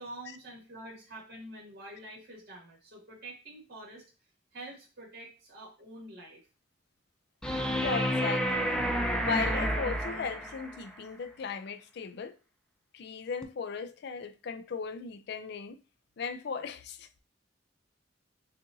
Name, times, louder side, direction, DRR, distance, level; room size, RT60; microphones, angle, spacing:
voice 1, 0.0-4.0 4.5-6.4, right 1 dB, 60° right, 2.1 m, -46 dB
sound 1, 7.4-10.8 13.4-13.5, equal, 5° left, 0.4 m, -30 dB
voice 2, 7.8-8.8 9.2-12.4 12.9-15.8 16.2-17.2, left 5 dB, 65° left, 0.4 m, -37 dB
6.6 x 2.5 x 2.6 m
head